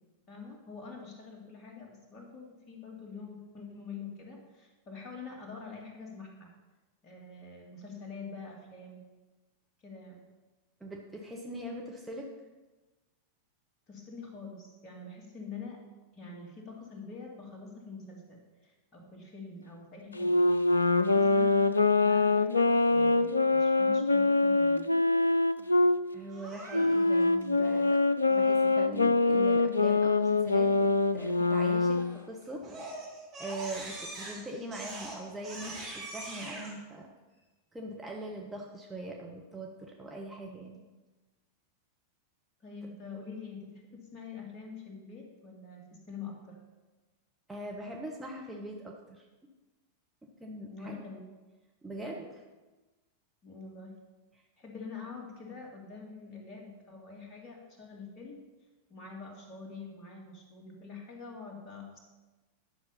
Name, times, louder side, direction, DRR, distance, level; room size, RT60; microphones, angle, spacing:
voice 1, 0.3-6.5 7.0-9.0 9.8-10.2 13.9-15.8 16.1-20.4 21.0-24.9 42.6-46.6 50.7-51.2 53.4-54.0 54.6-58.4 58.9-62.0, left 4 dB, 35° left, 0 dB, 2.5 m, -45 dB
voice 2, 10.8-12.3 26.1-32.6 33.4-37.1 37.7-40.8 47.5-49.3 50.4-51.0 51.8-52.4, right 1 dB, 10° right, -1 dB, 1.1 m, -41 dB
Wind instrument woodwind instrument, 20.2-26.0 26.7-32.1, left 3 dB, 80° left, 0.4 m, -24 dB
Crying sobbing, 26.3-27.2 31.9-32.2 32.6-36.7, right 2 dB, 30° right, 3.4 m, -43 dB
10.5 x 6.4 x 5.6 m, 1.2 s
figure-of-eight pair, 90°, 0 cm